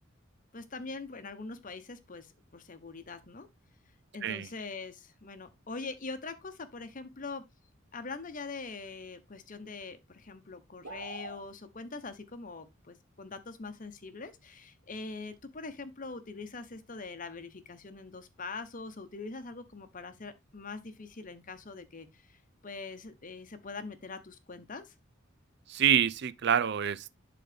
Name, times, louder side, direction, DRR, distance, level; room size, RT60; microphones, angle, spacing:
voice 1, 0.5-3.5 4.1-7.4 7.9-24.9, left 3 dB, 40° left, 0.9 m, -43 dB
sound 1, 10.8-11.4, right 2 dB, 90° right, 2.1 m, -42 dB
voice 2, 25.7-27.1, right 9 dB, 55° right, 0.4 m, -27 dB
11.0 x 3.9 x 3.4 m
head